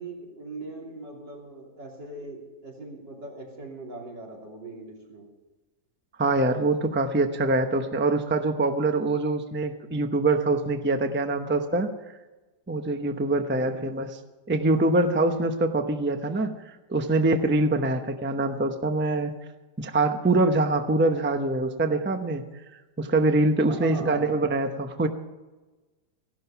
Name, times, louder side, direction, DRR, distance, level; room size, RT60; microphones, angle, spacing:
voice 1, 0.0-5.3 13.5-13.8 18.4-18.6 23.7-24.3, right 3 dB, 85° right, -1 dB, 3.9 m, -40 dB
voice 2, 6.2-11.9 12.7-14.2 14.5-19.3 19.8-22.4 23.0-25.1, right 2 dB, 10° right, 6 dB, 0.5 m, -24 dB
16.0 x 12.0 x 5.8 m, 1.2 s
omnidirectional pair, 1.9 m